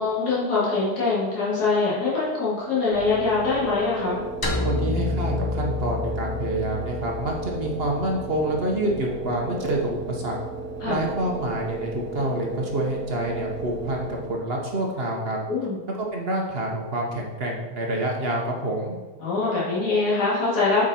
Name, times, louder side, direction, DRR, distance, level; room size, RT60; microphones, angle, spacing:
voice 1, 0.0-4.2 10.8-11.0 15.5-15.8 19.2-20.8, left 3 dB, 65° left, -8 dB, 3.0 m, -23 dB
sound 1, 2.9-14.6, right 3 dB, 60° right, 1.3 m, -35 dB
sound 2, 4.4-8.8, left 3 dB, 30° left, 0.4 m, -30 dB
voice 2, 4.6-10.4 10.9-15.4 16.0-18.9, right 1 dB, 40° right, 0 dB, 1.0 m, -27 dB
7.7 x 5.0 x 4.3 m, 1.2 s
omnidirectional pair, 1.8 m